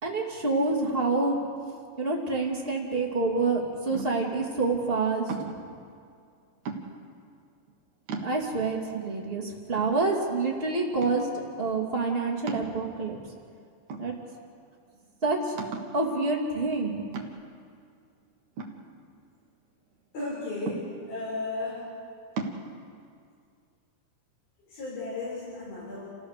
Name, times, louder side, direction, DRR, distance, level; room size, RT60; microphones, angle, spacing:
voice 1, 0.0-1.4 2.0-5.2 8.2-13.2 14.0-14.1 15.2-15.6 15.9-17.0, right 3 dB, 20° right, -2 dB, 1.9 m, -27 dB
sound 1, 3.9-4.4 5.3-5.7 6.6-7.2 7.7-7.8 8.1-8.7 9.3-9.4 9.8-10.5 11.0-11.4 12.5-13.2 13.9-14.5 14.9-15.0 15.6-16.0 17.1-17.6 18.6-19.5 20.7-21.2 22.4-22.6, right 4 dB, 55° right, 2.5 m, -37 dB
voice 2, 20.1-21.9 24.7-26.0, left 2 dB, 65° left, -10 dB, 9.0 m, -34 dB
30.0 x 16.0 x 6.7 m, 2.3 s
omnidirectional pair, 4.5 m